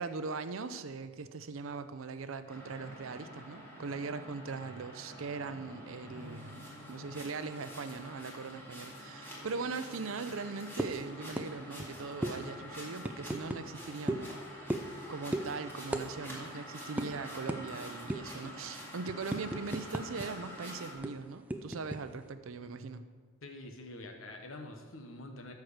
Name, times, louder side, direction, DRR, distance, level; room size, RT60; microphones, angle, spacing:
voice 1, 0.0-14.3 15.1-23.1, right 4 dB, 85° right, 11 dB, 0.6 m, -40 dB
sound 1, 2.5-20.9, equal, 10° left, 2.1 m, -47 dB
sound 2, 10.8-11.0 11.4-11.5 11.8-11.9 12.2-12.4 13.0-13.6 14.1-14.3 14.7-15.0 15.3-15.5 15.9-16.1 16.3-16.5 17.0-17.1 17.5-17.6 18.1-18.4 18.8-20.3 20.5-20.6 21.0-22.0, right 1 dB, 5° right, 0.4 m, -34 dB
voice 2, 23.4-25.5, left 2 dB, 85° left, 4 dB, 1.1 m, -46 dB
13.5 x 4.7 x 6.5 m, 1.5 s
head